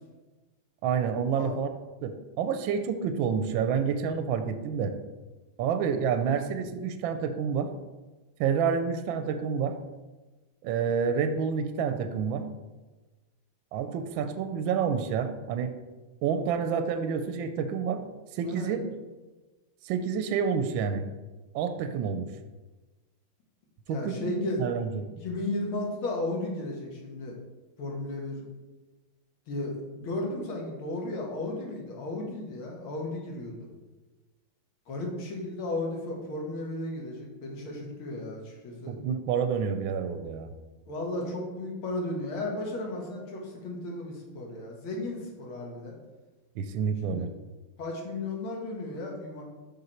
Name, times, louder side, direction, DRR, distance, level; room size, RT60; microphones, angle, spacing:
voice 1, 0.8-1.7 2.0-4.9 5.6-7.7 8.4-9.8 10.6-12.5 13.7-15.7 16.2-18.0 18.3-18.8 19.8-21.1 21.5-22.3 23.9-24.3 24.6-24.9 38.9-40.5 46.6-47.3, right 6 dB, 75° right, 9 dB, 1.3 m, -28 dB
voice 2, 18.4-18.8 23.9-24.6 25.2-27.4 27.8-28.4 29.5-33.7 34.9-38.9 40.9-45.9 47.1-47.3 47.8-49.4, left 2 dB, 75° left, -1 dB, 2.4 m, -34 dB
7.8 x 5.5 x 4.3 m, 1.2 s
omnidirectional pair, 2.4 m